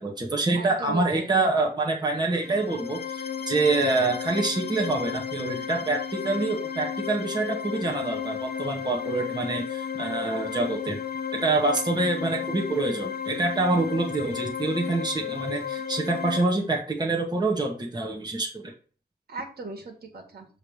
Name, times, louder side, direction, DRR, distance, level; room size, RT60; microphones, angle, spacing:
voice 1, 0.0-11.0 11.4-18.7, right 2 dB, 25° right, 0 dB, 1.6 m, -26 dB
voice 2, 0.5-1.4 19.3-20.5, right 3 dB, 65° right, 3 dB, 1.9 m, -38 dB
sound 1, 2.3-16.4, left 8 dB, 65° left, 1.0 m, -33 dB
7.3 x 3.5 x 6.4 m, 0.39 s
wide cardioid pair, 120°, 17 cm